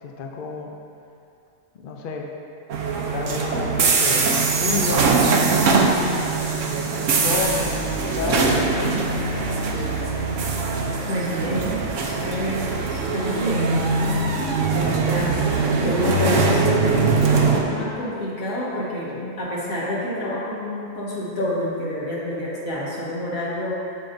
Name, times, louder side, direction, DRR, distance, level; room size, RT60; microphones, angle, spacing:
voice 1, 0.0-0.7 1.7-2.3 3.1-5.2 6.4-10.0 12.3-12.8 14.5-14.9 19.1-19.4, left 4 dB, 55° left, 1 dB, 0.6 m, -31 dB
sound 1, 2.7-17.6, right 4 dB, 70° right, 1.0 m, -22 dB
voice 2, 11.1-13.8 14.7-15.5 15.7-23.7, equal, 85° left, -6 dB, 1.8 m, -28 dB
7.2 x 7.0 x 2.6 m, 2.6 s
omnidirectional pair, 1.4 m